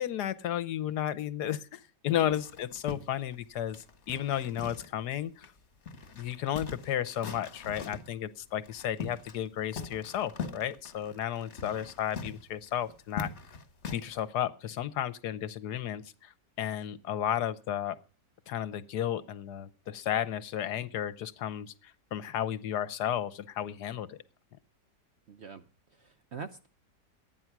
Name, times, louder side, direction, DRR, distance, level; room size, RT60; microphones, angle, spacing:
voice 1, 0.0-5.5 6.1-13.3 13.9-18.0 18.5-24.2, left 11 dB, 70° left, 14 dB, 1.3 m, -33 dB
sound 1, 2.3-5.1 5.4-5.5 5.9-8.1 8.6-9.5 9.7-14.2, left 5 dB, 45° left, 1.5 m, -42 dB
voice 2, 25.3-25.7 25.9-26.7, right 5 dB, 55° right, 9 dB, 0.7 m, -44 dB
12.5 x 9.4 x 5.9 m, 0.37 s
omnidirectional pair, 1.8 m